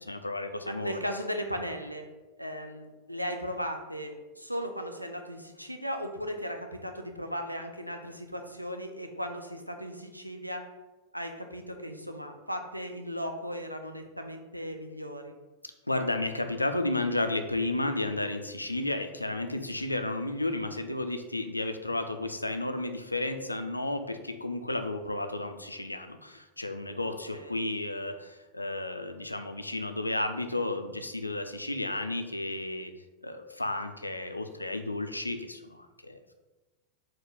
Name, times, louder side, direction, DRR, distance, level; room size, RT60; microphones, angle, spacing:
voice 1, 0.0-1.0 15.9-32.9 33.2-36.3, left 2 dB, 85° left, 7 dB, 0.3 m, -32 dB
voice 2, 0.7-2.1 2.4-10.7 11.1-15.3 27.1-27.7, equal, 90° right, 5 dB, 0.4 m, -37 dB
4.5 x 2.2 x 3.9 m, 1.1 s
figure-of-eight pair, 90°, 0 cm